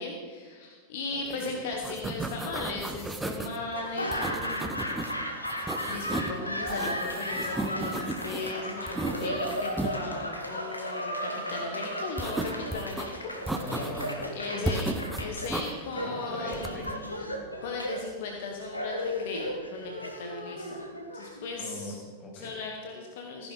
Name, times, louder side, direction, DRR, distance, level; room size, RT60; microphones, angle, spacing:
voice 1, 0.0-4.8 5.8-13.6 14.3-20.8 21.1-22.0 22.3-23.5, left 3 dB, 55° left, 2 dB, 1.3 m, -37 dB
voice 2, 1.1-1.5 8.8-9.5 13.6-14.8 15.9-16.9 17.2-17.3 21.6-22.6, left 1 dB, 20° left, -1 dB, 2.8 m, -42 dB
sound 1, 1.3-1.5 1.7-3.6 4.1-5.1 5.5-6.4 6.7-8.5 8.9-9.9 12.2-13.1 13.5-14.2 14.6-15.7 16.5-17.0, right 2 dB, 10° right, 0.9 m, -34 dB
Laughter / Applause, 3.7-21.8, equal, 85° left, 1.2 m, -35 dB
15.5 x 10.0 x 4.1 m, 1.5 s
figure-of-eight pair, 90°, 0 cm